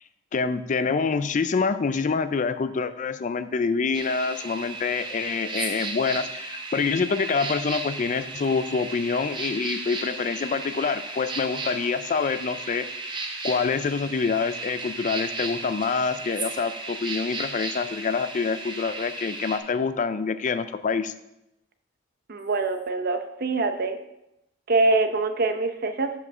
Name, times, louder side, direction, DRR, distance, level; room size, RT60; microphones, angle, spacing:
voice 1, 0.3-12.9 13.4-21.1, left 5 dB, 40° left, 12 dB, 0.4 m, -26 dB
sound 1, 3.9-19.6, right 3 dB, 25° right, 0.9 m, -35 dB
voice 2, 22.3-24.0 24.7-26.2, right 3 dB, 50° right, 8 dB, 0.7 m, -24 dB
7.6 x 5.4 x 6.0 m, 0.86 s
head